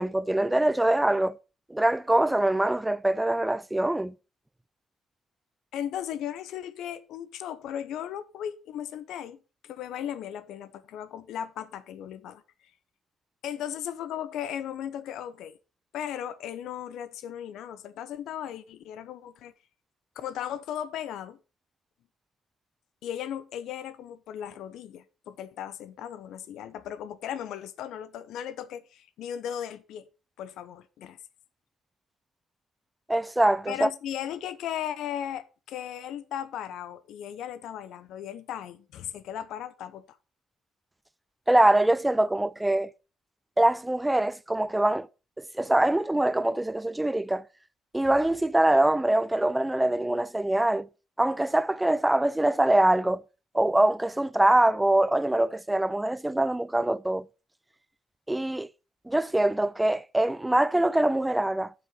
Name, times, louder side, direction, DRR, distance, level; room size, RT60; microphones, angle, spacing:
voice 1, 0.0-1.4 1.7-4.1 33.1-33.9 41.5-42.9 43.6-45.1 45.4-47.4 47.9-50.9 51.2-53.2 53.5-57.3 58.3-58.7 59.1-61.7, right 1 dB, 10° right, 0.4 m, -24 dB
voice 2, 5.7-12.4 13.4-15.6 15.9-19.5 20.2-21.4 23.0-30.1 30.4-31.2 33.7-40.2, left 10 dB, 85° left, 0.8 m, -36 dB
7.7 x 6.3 x 5.5 m
cardioid pair, 90°, 0 cm